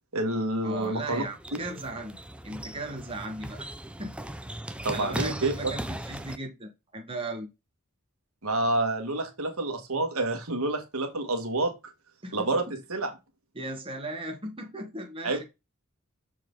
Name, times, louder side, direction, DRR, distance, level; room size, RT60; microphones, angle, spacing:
voice 1, 0.1-1.2 4.8-5.7 8.4-11.7 12.3-12.6 12.9-13.1 15.2-15.4, right 2 dB, 70° right, 1.8 m, -28 dB
voice 2, 0.6-2.2 2.4-3.7 4.0-4.2 4.9-7.5 12.2-12.7 13.5-15.4, right 2 dB, 25° right, 1.5 m, -37 dB
sound 1, 0.7-6.4, right 1 dB, 5° right, 0.6 m, -38 dB
6.9 x 4.7 x 3.9 m
head